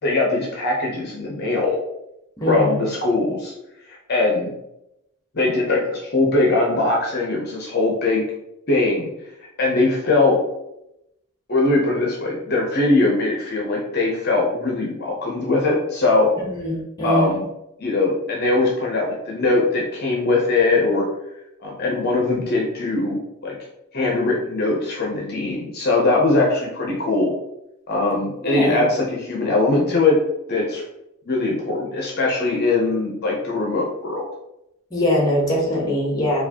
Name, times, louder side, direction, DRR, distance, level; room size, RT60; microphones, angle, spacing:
voice 1, 0.0-1.8 2.5-3.5 4.1-4.5 5.3-8.3 8.7-9.1 9.6-10.4 11.5-16.3 17.0-17.5 17.8-21.1 21.6-23.6 23.9-27.3 27.9-30.2 30.5-30.8 31.3-34.2, left 2 dB, 45° left, -2 dB, 0.6 m, -21 dB
voice 2, 2.4-2.8 16.4-17.4 28.4-28.8 34.9-36.4, equal, 15° left, -2 dB, 0.9 m, -22 dB
4.5 x 2.3 x 2.8 m, 0.86 s
head